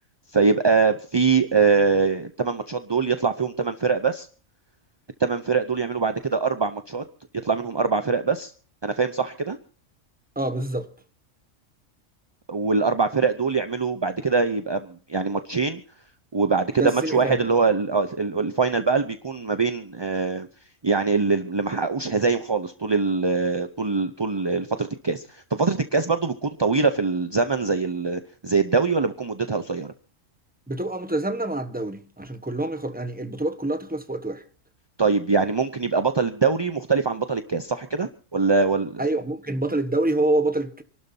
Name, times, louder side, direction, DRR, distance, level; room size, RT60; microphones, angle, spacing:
voice 1, 0.3-4.3 5.2-7.0 7.4-8.5 8.8-9.6 12.5-15.8 16.3-20.5 20.8-29.9 35.0-39.0, right 4 dB, 25° right, 0.6 m, -23 dB
voice 2, 10.4-10.9 16.8-17.5 30.7-34.4 39.0-40.8, right 2 dB, 5° right, 1.2 m, -26 dB
28.0 x 12.5 x 2.8 m
omnidirectional pair, 1.4 m